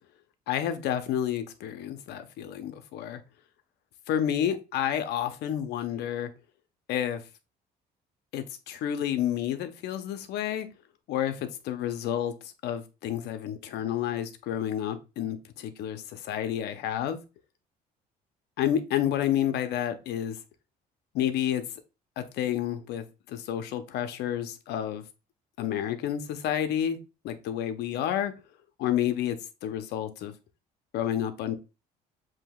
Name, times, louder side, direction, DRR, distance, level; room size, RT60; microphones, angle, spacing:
voice 1, 0.5-3.2 4.1-6.3 6.9-7.2 8.3-10.7 11.1-12.3 12.6-17.2 18.6-20.4 21.1-21.6 22.2-25.0 25.6-27.0 27.2-28.3 28.8-29.4 29.6-30.3 30.9-31.6, left 10 dB, 80° left, 0.7 m, -30 dB
7.5 x 2.8 x 2.3 m
cardioid pair, 110°, 17 cm